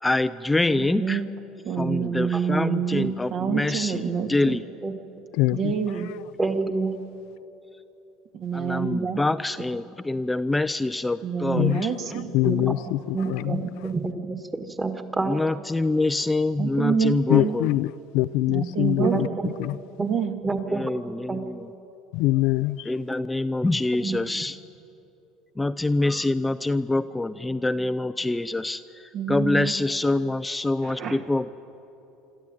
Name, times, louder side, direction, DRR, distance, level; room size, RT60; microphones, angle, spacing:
voice 1, 0.0-1.2 1.8-4.0 4.3-4.6 8.5-11.9 15.2-17.7 20.7-21.7 22.9-24.6 25.6-31.5, left 2 dB, 10° left, 0.5 m, -25 dB
voice 2, 0.7-1.3 1.6-4.6 5.5-6.1 8.3-9.2 11.2-12.3 13.2-13.7 16.6-17.6 18.5-19.4 20.0-20.4 29.1-29.7 30.8-31.2, right 7 dB, 55° right, 2.1 m, -27 dB
voice 3, 2.3-2.8 4.8-4.9 6.4-7.0 12.4-12.8 13.1-15.4 19.0-19.6 20.0-20.9 21.3-21.5 23.9-24.2, right 3 dB, 15° right, 1.8 m, -28 dB
voice 4, 5.3-5.7 11.6-11.9 12.3-13.7 17.3-19.3 19.6-19.8 22.1-22.9, left 17 dB, 75° left, 0.4 m, -24 dB
25.5 x 13.0 x 9.1 m
supercardioid pair, 90°, 0 cm